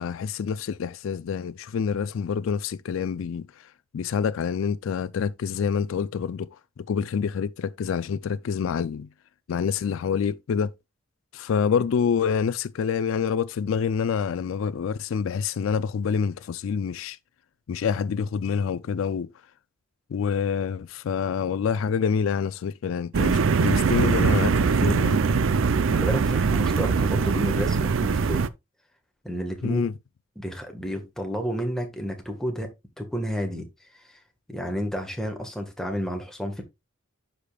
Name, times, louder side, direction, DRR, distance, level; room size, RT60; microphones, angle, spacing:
voice 1, 0.0-3.5 3.9-6.5 6.8-9.1 9.5-10.7 11.3-17.2 17.7-19.3 20.1-25.2 29.6-29.9, left 6 dB, 70° left, 0.3 m, -27 dB
sound 1, 23.1-28.5, right 5 dB, 70° right, 0.5 m, -22 dB
voice 2, 25.9-28.4 29.2-29.9 30.4-32.7 33.0-33.7 34.5-36.6, equal, ahead, 1.4 m, -31 dB
11.5 x 5.1 x 2.3 m
head